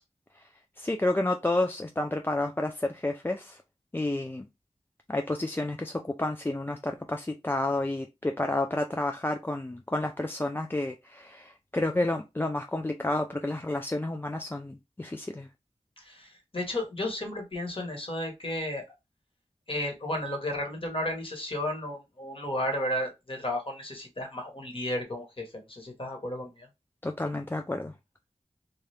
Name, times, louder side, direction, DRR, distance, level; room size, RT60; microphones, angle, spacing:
voice 1, 0.8-3.6 3.9-4.5 5.1-15.5 27.0-27.9, left 2 dB, 15° left, 0.3 m, -30 dB
voice 2, 16.5-18.8 19.7-25.4 25.7-26.5, left 1 dB, 45° left, 1.3 m, -33 dB
2.7 x 2.3 x 3.3 m
wide cardioid pair, 50°, 13 cm